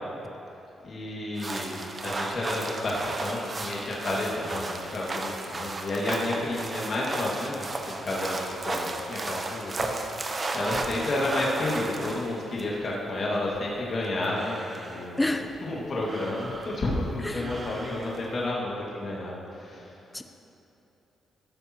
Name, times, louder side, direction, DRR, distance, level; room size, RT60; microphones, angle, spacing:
voice 1, 0.8-15.3 15.6-20.0, left 2 dB, 50° left, -4 dB, 2.1 m, -31 dB
sound 1, 1.4-12.6 14.0-15.1 16.0-16.9 17.3-18.3, right 2 dB, 35° right, 0.8 m, -34 dB
voice 2, 15.2-15.5 15.8-15.9 17.2-17.5 20.1-20.2, left 1 dB, 15° left, 7 dB, 0.7 m, -28 dB
14.5 x 6.8 x 3.0 m, 3.0 s
cardioid pair, 70°, 0 cm